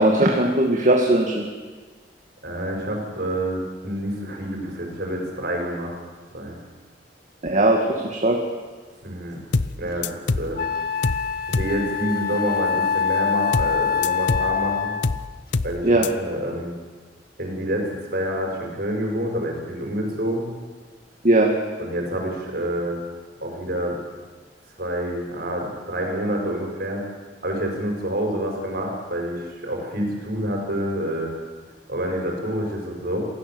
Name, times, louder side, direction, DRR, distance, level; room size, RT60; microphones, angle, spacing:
voice 1, 0.0-1.4 7.4-8.4 15.8-16.1 21.2-21.5, right 1 dB, 45° right, 1 dB, 2.2 m, -18 dB
voice 2, 2.4-6.0 6.3-6.6 9.0-9.4 9.8-10.6 11.5-14.9 15.6-16.7 17.4-20.5 21.8-23.0 23.4-24.0 24.8-27.0 27.4-31.3 31.9-33.2, equal, 60° right, 1 dB, 6.2 m, -27 dB
sound 1, 9.5-9.8 10.0-10.5 11.0-11.3 11.5-11.8 13.5-13.8 14.0-14.5 15.0-15.3 15.5-15.8 16.0-16.1, left 3 dB, 85° left, 0.8 m, -24 dB
Wind instrument woodwind instrument, 9.9-10.0 10.6-15.2, left 6 dB, 60° left, 1.4 m, -25 dB
27.5 x 16.5 x 7.9 m, 1.4 s
head